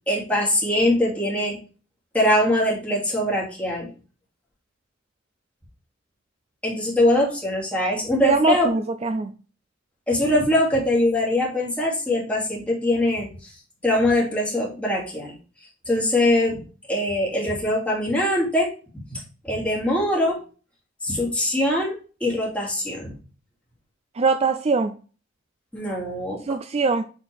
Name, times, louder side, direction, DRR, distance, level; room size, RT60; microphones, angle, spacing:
voice 1, 0.1-1.6 2.1-3.9 6.6-8.7 10.1-13.3 13.8-15.3 15.9-16.6 16.9-18.7 19.1-20.4 21.0-23.1 25.7-26.4, left 1 dB, 5° left, 2.7 m, -22 dB
voice 2, 8.2-9.3 24.2-24.9 26.5-27.0, right 4 dB, 30° right, 0.4 m, -22 dB
8.3 x 4.5 x 3.4 m
head